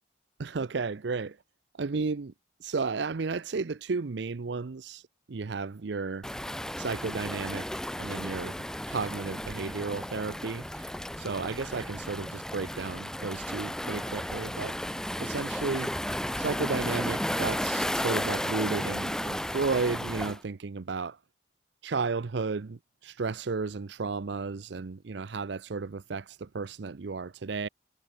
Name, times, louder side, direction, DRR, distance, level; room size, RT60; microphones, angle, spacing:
voice 1, 0.4-1.4 1.8-2.3 2.6-6.3 6.8-10.9 11.2-14.8 15.2-15.9 16.4-21.2 21.8-27.7, right 4 dB, 60° right, 0.5 m, -33 dB
Waves surf, 6.2-20.4, left 1 dB, 5° left, 0.6 m, -33 dB
head